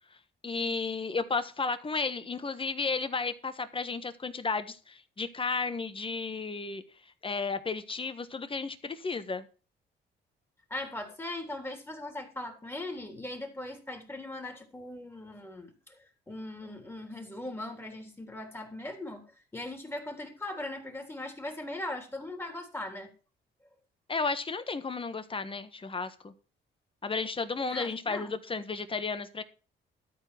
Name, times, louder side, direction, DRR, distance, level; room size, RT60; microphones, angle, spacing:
voice 1, 0.4-6.8 7.2-9.5 24.1-26.3 27.0-29.4, left 4 dB, 25° left, 10 dB, 1.5 m, -33 dB
voice 2, 10.7-19.3 19.5-23.1 27.7-28.4, left 1 dB, 10° left, 4 dB, 3.4 m, -39 dB
13.0 x 4.7 x 7.6 m, 0.35 s
cardioid pair, 90°, 20 cm